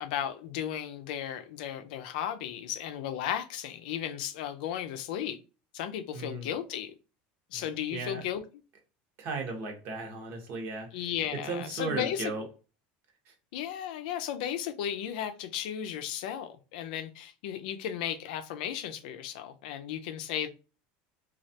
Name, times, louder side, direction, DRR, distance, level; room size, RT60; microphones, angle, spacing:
voice 1, 0.0-5.4 5.7-6.9 7.5-8.4 10.9-12.3 13.5-20.5, left 10 dB, 80° left, 0.4 m, -35 dB
voice 2, 6.1-6.5 7.5-7.6 7.9-8.3 9.2-11.0 11.3-12.4 13.3-13.4, right 3 dB, 50° right, 1.0 m, -36 dB
3.2 x 2.3 x 2.7 m
supercardioid pair, 130°, 5 cm